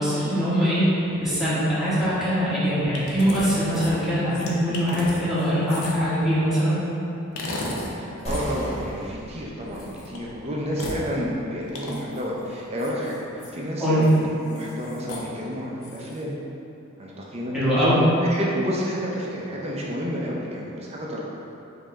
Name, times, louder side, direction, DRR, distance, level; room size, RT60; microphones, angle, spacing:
voice 1, 0.0-6.8 13.8-14.0 17.5-18.0, equal, ahead, -12 dB, 1.1 m, -22 dB
sound 1, 2.9-3.5 3.7-6.1 7.4-7.9 8.2-8.4 9.8-10.2 10.7-11.0 11.7-12.2 12.8-13.5 14.0-14.2 14.5-15.3 15.8-16.2, left 2 dB, 75° left, 0.6 m, -34 dB
voice 2, 8.0-13.2 13.5-16.4 17.0-21.2, equal, 30° right, -4 dB, 0.5 m, -30 dB
sound 2, 8.2-13.4, equal, 30° left, 0.7 m, -39 dB
5.2 x 2.8 x 3.6 m, 2.9 s
head